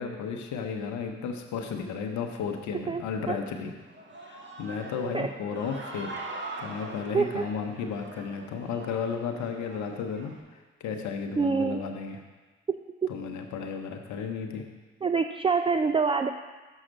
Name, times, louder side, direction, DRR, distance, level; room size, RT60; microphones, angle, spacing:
voice 1, 0.0-3.7 4.2-6.1 6.6-12.2 13.1-14.7, left 6 dB, 75° left, 4 dB, 0.8 m, -34 dB
voice 2, 2.9-3.4 5.1-5.3 7.1-7.5 11.4-11.8 12.7-13.1 15.0-16.3, right 5 dB, 20° right, 8 dB, 0.4 m, -26 dB
Human voice / Cheering, 3.8-10.4, right 2 dB, 40° right, 1.3 m, -43 dB
6.2 x 5.7 x 6.3 m, 1.3 s
hypercardioid pair, 45°, 29 cm